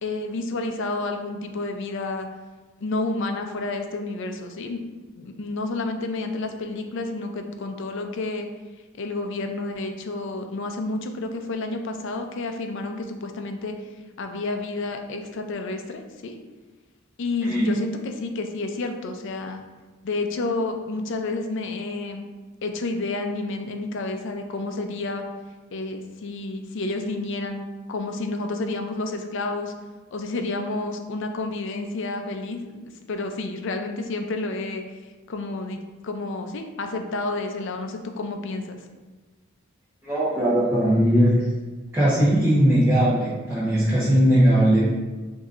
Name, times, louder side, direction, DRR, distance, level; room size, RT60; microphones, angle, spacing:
voice 1, 0.0-2.3 2.8-4.8 5.2-8.5 9.0-13.9 14.2-16.3 17.2-19.6 20.0-22.3 22.6-25.2 25.7-29.7 30.1-32.8 33.1-35.0 35.3-38.8, left 2 dB, 65° left, 5 dB, 0.5 m, -30 dB
voice 2, 17.4-17.7 40.0-41.4 41.9-44.8, equal, 10° right, -11 dB, 1.0 m, -19 dB
7.0 x 2.7 x 2.5 m, 1.3 s
head